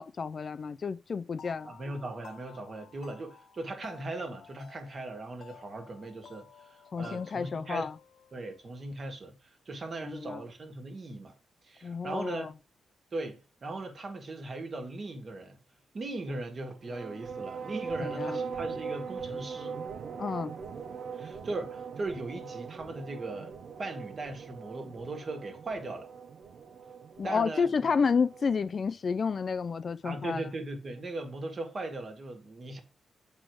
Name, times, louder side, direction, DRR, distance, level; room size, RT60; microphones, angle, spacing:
voice 1, 0.0-1.7 6.9-7.9 10.0-10.4 11.8-12.5 18.0-18.4 20.2-20.5 27.2-30.4, left 5 dB, 45° left, 0.3 m, -30 dB
sound 1, 1.3-8.8, left 7 dB, 65° left, 0.7 m, -53 dB
voice 2, 1.6-7.9 8.3-11.3 11.6-12.5 13.1-15.6 15.9-19.8 21.1-26.1 27.2-27.9 30.0-32.8, right 2 dB, 40° right, 1.7 m, -39 dB
sound 2, 16.8-28.7, right 5 dB, 60° right, 0.9 m, -41 dB
7.7 x 4.2 x 4.6 m
cardioid pair, 100°, 0 cm